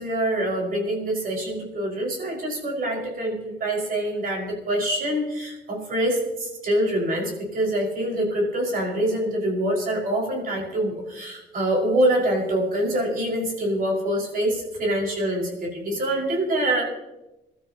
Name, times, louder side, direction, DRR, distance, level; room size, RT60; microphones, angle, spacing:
voice 1, 0.0-16.8, right 1 dB, 55° right, -1 dB, 5.7 m, -25 dB
27.5 x 13.0 x 3.0 m, 0.98 s
cardioid pair, 130°, 18 cm